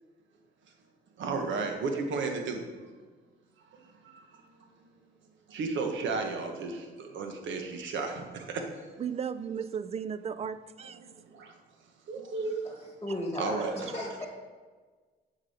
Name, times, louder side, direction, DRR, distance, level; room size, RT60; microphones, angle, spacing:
voice 1, 1.2-2.6 3.8-4.2 5.5-8.7 11.0-11.5 12.1-12.6 13.4-13.9, right 4 dB, 70° right, 4 dB, 1.2 m, -33 dB
voice 2, 9.0-11.0, right 7 dB, 30° right, 13 dB, 0.4 m, -35 dB
voice 3, 12.6-14.3, left 1 dB, 15° left, 0 dB, 1.5 m, -36 dB
7.4 x 4.9 x 5.0 m, 1.4 s
cardioid pair, 90°, 20 cm